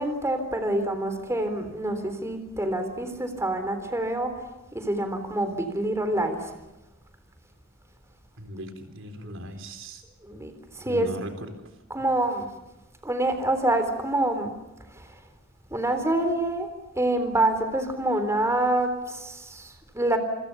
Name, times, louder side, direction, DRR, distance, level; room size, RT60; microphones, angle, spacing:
voice 1, 0.0-4.4 4.7-6.6 10.2-11.1 11.9-12.5 13.0-14.5 14.9-15.2 15.7-16.7 17.0-20.2, right 1 dB, 15° right, 7 dB, 3.6 m, -26 dB
voice 2, 8.4-10.0 10.8-11.5, equal, 70° right, 7 dB, 4.0 m, -38 dB
28.0 x 25.0 x 7.0 m, 1.0 s
head